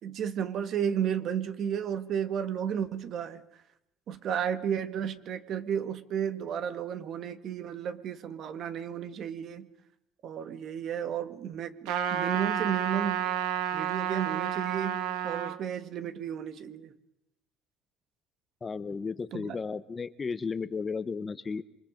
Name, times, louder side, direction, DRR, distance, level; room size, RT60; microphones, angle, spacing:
voice 1, 0.0-3.4 4.1-9.7 10.2-13.3 13.7-16.9 19.3-19.6, right 8 dB, 50° right, 11 dB, 1.7 m, -33 dB
Trumpet, 11.9-15.6, right 9 dB, 85° right, 2.0 m, -30 dB
voice 2, 18.6-21.6, left 5 dB, 25° left, 14 dB, 0.9 m, -34 dB
27.5 x 25.0 x 5.2 m, 0.84 s
cardioid pair, 130°, 0 cm